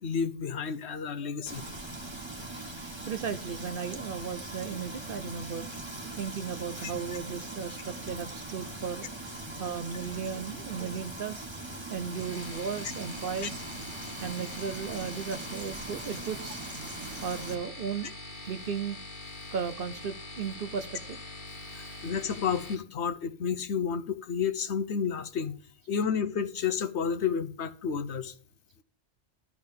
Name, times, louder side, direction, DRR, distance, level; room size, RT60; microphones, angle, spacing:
voice 1, 0.0-1.6 21.7-25.5 25.9-28.3, left 6 dB, 65° left, 1.1 m, -31 dB
Frying (food), 1.5-17.5, right 2 dB, 20° right, 1.6 m, -41 dB
voice 2, 3.0-5.7 6.1-9.1 9.6-11.5 11.9-13.6 14.2-16.6 17.2-18.2 18.5-19.0 19.5-21.2, right 6 dB, 55° right, 0.7 m, -35 dB
sound 1, 12.1-22.7, left 2 dB, 40° left, 1.7 m, -44 dB
12.5 x 4.8 x 7.2 m
omnidirectional pair, 1.3 m